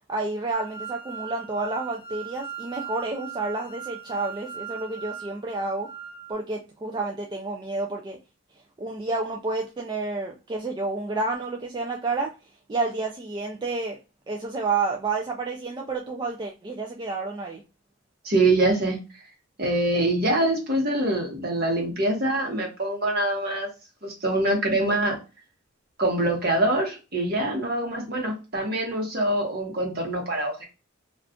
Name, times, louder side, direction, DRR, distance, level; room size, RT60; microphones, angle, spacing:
voice 1, 0.1-5.9 6.3-8.2 8.8-12.3 12.7-14.0 14.3-17.6, right 3 dB, 20° right, 0 dB, 0.3 m, -30 dB
sound 1, 0.5-6.3, right 8 dB, 50° left, 0.4 m, -39 dB
voice 2, 18.2-19.0 19.6-23.7 24.0-25.2 26.0-30.6, right 1 dB, 50° right, 1 dB, 1.1 m, -24 dB
2.4 x 2.4 x 3.5 m, 0.29 s
head